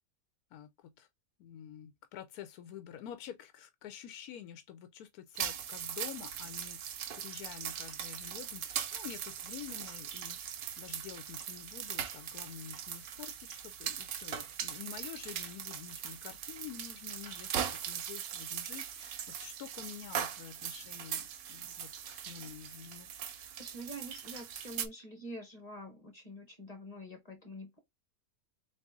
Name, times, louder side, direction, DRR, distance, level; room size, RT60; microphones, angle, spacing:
voice 1, 0.5-1.1 1.4-23.1, left 10 dB, 85° left, 1.1 m, -48 dB
sound 1, 5.4-24.9, right 9 dB, 75° right, 1.1 m, -40 dB
voice 2, 23.3-27.8, equal, 30° left, 1.1 m, -46 dB
4.0 x 2.9 x 3.5 m
omnidirectional pair, 1.6 m